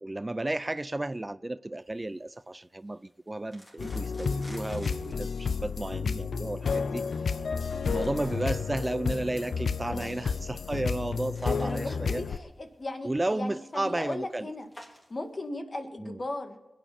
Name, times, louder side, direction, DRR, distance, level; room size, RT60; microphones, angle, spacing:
voice 1, 0.0-7.3 7.8-12.2 13.0-14.5 16.0-16.2, right 2 dB, 25° right, 0.4 m, -33 dB
sound 1, 1.8-15.5, equal, 30° left, 4.1 m, -56 dB
sound 2, 3.8-12.4, left 5 dB, 85° left, 0.6 m, -31 dB
voice 2, 11.4-14.7 15.1-16.6, left 2 dB, 45° left, 1.9 m, -37 dB
21.0 x 9.2 x 5.5 m
cardioid pair, 55°, 0 cm